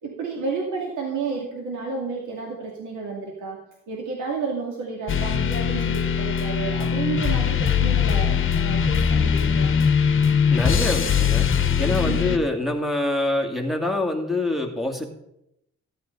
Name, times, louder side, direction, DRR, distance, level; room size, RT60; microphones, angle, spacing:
voice 1, 0.0-3.6 3.9-9.8 12.0-12.4, right 4 dB, 75° right, -1 dB, 2.7 m, -31 dB
sound 1, 5.1-12.4, left 7 dB, 40° left, 1.2 m, -21 dB
voice 2, 10.5-11.5 11.8-15.1, left 2 dB, ahead, 3 dB, 2.3 m, -25 dB
14.5 x 8.8 x 4.1 m, 0.80 s
cardioid pair, 90°, 30 cm